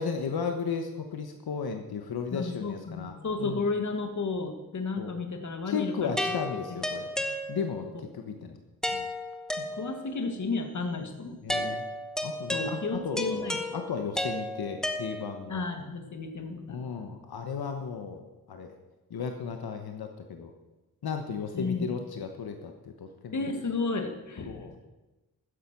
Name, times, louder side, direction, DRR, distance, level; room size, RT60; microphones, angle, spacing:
voice 1, 0.0-3.6 5.0-5.2 5.7-7.1 7.5-8.6 8.9-9.1 11.4-11.9 12.2-15.6 16.7-18.7 19.1-20.5 21.0-23.5 24.5-24.7, left 6 dB, 80° left, 5 dB, 1.2 m, -35 dB
voice 2, 2.3-6.4 6.7-6.8 7.3-7.4 9.6-11.7 12.5-13.8 15.5-17.0 21.5-21.9 23.3-24.6, left 3 dB, 50° left, 6 dB, 1.6 m, -33 dB
sound 1, 6.2-7.9 8.8-10.2 11.5-15.6, left 1 dB, ahead, 0.9 m, -33 dB
13.0 x 10.0 x 6.0 m, 1.1 s
wide cardioid pair, 160°, 37 cm